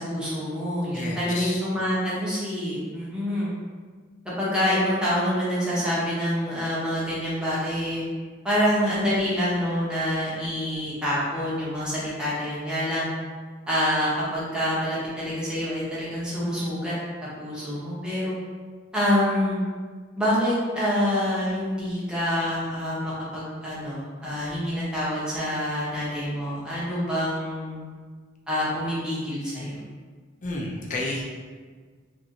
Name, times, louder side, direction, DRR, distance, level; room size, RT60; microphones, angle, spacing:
voice 1, 0.0-3.5 4.4-8.0 8.4-13.1 13.7-16.9 17.4-18.3 18.9-19.6 20.2-27.9 28.5-29.8, equal, 5° right, -9 dB, 0.9 m, -26 dB
voice 2, 0.9-1.6 30.4-31.2, left 2 dB, 40° left, -2 dB, 0.5 m, -31 dB
3.0 x 2.6 x 2.8 m, 1.5 s
head